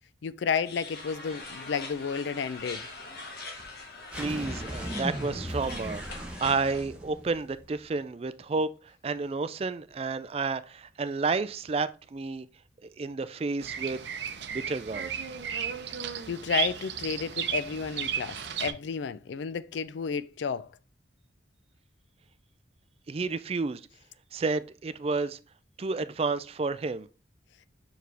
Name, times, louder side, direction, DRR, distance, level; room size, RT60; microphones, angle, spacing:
voice 1, 0.2-2.8 16.3-20.7, left 6 dB, 70° left, 0.4 m, -31 dB
sound 1, 0.6-6.8, left 3 dB, 50° left, 1.4 m, -43 dB
sound 2, 4.1-7.8, equal, 5° right, 0.9 m, -37 dB
voice 2, 4.1-8.7 9.0-12.5 12.8-14.0 14.5-15.1 23.1-23.8 24.3-25.4 25.8-27.1, right 4 dB, 30° right, 0.3 m, -31 dB
Bird vocalization bird call bird song, 13.6-18.7, right 8 dB, 65° right, 0.7 m, -34 dB
6.0 x 4.8 x 3.3 m
head